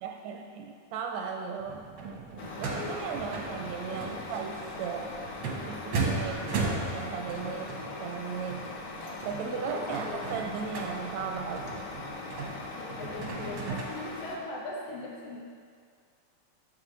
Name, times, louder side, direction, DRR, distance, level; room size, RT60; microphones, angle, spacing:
voice 1, 0.0-1.9 2.6-5.2 5.7-8.7 9.2-11.8, right 6 dB, 80° right, 3 dB, 1.7 m, -36 dB
sound 1, 1.6-13.8, right 4 dB, 65° right, 1.2 m, -37 dB
Truck, 2.4-14.4, left 3 dB, 85° left, 1.0 m, -40 dB
voice 2, 2.7-3.2 9.5-10.4 12.8-15.5, left 3 dB, 65° left, -3 dB, 1.8 m, -40 dB
10.5 x 6.8 x 3.2 m, 2.1 s
omnidirectional pair, 3.4 m